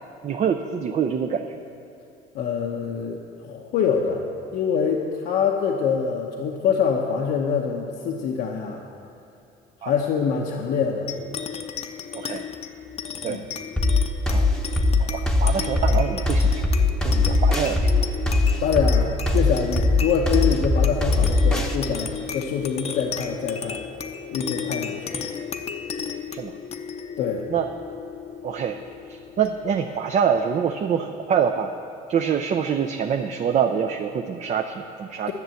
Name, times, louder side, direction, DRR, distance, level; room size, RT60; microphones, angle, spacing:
voice 1, 0.2-1.6 9.8-9.9 12.1-12.4 13.2-13.4 14.3-14.4 15.0-16.5 17.0-17.9 26.3-26.5 27.5-27.7 28.4-28.8 29.1-31.7 32.1-35.3, right 7 dB, 45° right, 5 dB, 0.5 m, -25 dB
voice 2, 2.3-4.2 4.5-8.8 9.8-11.1 13.2-13.4 18.6-23.8 24.3-25.2 27.2-27.5, left 6 dB, 75° left, 0 dB, 0.9 m, -25 dB
sound 1, 11.1-29.9, left 7 dB, 40° left, 0.7 m, -34 dB
sound 2, 13.8-21.8, left 3 dB, 5° left, 0.9 m, -20 dB
10.5 x 6.9 x 7.6 m, 2.6 s
cardioid pair, 110°, 17 cm